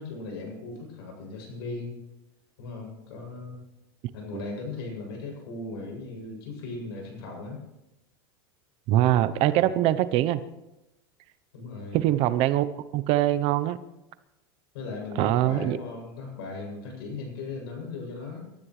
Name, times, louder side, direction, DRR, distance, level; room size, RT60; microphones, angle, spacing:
voice 1, 0.0-2.0 2.6-3.6 4.1-7.6 9.5-9.8 11.5-12.0 14.7-18.5, left 3 dB, 80° left, 0 dB, 7.7 m, -38 dB
voice 2, 8.9-10.4 11.9-12.7 12.9-13.8 15.2-15.8, right 13 dB, 50° right, 14 dB, 0.8 m, -23 dB
26.0 x 13.0 x 3.3 m, 0.95 s
supercardioid pair, 140°, 13 cm